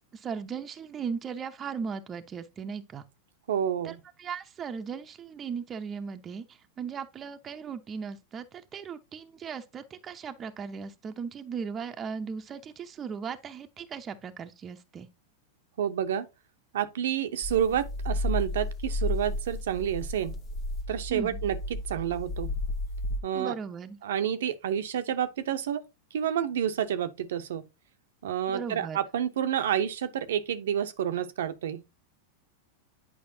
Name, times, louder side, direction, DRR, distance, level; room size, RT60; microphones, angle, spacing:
voice 1, 0.1-3.0 3.8-15.1 21.1-21.4 23.3-24.0 28.5-29.0, right 6 dB, 25° right, 0.8 m, -37 dB
voice 2, 3.5-4.0 15.8-16.3 16.7-20.4 20.9-21.6 21.9-22.5 23.2-23.5 24.0-25.8 26.1-27.7 28.2-31.8, right 9 dB, 70° right, 0.8 m, -29 dB
sound 1, 17.4-23.2, left 1 dB, 35° left, 0.9 m, -33 dB
8.6 x 5.1 x 2.7 m
hypercardioid pair, 100°, 0 cm